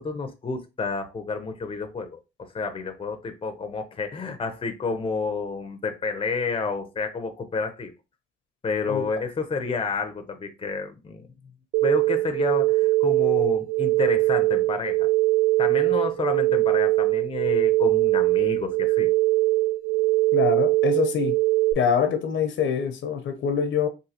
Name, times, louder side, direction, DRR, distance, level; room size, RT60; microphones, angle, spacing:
voice 1, 0.0-7.9 8.6-11.3 11.8-15.1 15.6-19.1, left 4 dB, 25° left, 0.7 m, -30 dB
sound 1, 11.7-21.7, right 19 dB, 90° right, 0.4 m, -22 dB
voice 2, 20.3-21.3 21.7-23.9, left 7 dB, 75° left, 0.8 m, -24 dB
3.8 x 2.7 x 2.8 m
cardioid pair, 90°, 20 cm